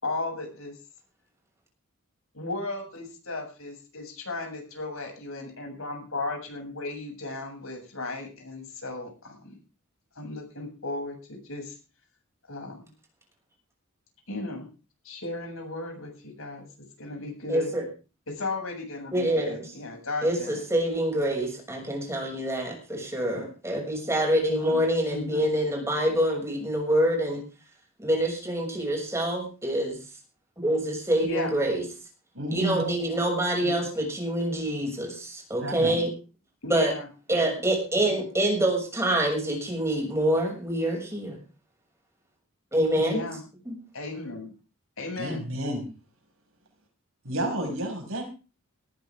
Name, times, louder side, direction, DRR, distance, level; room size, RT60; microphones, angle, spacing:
voice 1, 0.0-0.7 2.3-9.6 10.2-11.8 12.5-12.9 14.3-14.7 15.0-17.7 18.3-20.6 24.5-25.5 31.2-31.5 33.6-33.8 36.6-37.5 38.0-38.2 43.0-43.4 43.9-44.5 45.0-45.4, left 2 dB, 75° left, 2 dB, 7.5 m, -35 dB
voice 2, 17.5-17.9 19.1-19.6 20.2-27.4 28.0-30.0 30.6-31.8 32.5-36.1 36.7-36.9 37.3-41.4 42.7-43.3 43.6-43.7, right 1 dB, 15° right, 1 dB, 6.7 m, -26 dB
voice 3, 32.3-32.8 35.6-36.0 42.9-43.0 45.2-45.9 47.2-48.2, equal, 70° right, 3 dB, 5.7 m, -31 dB
19.5 x 14.0 x 3.7 m, 0.34 s
head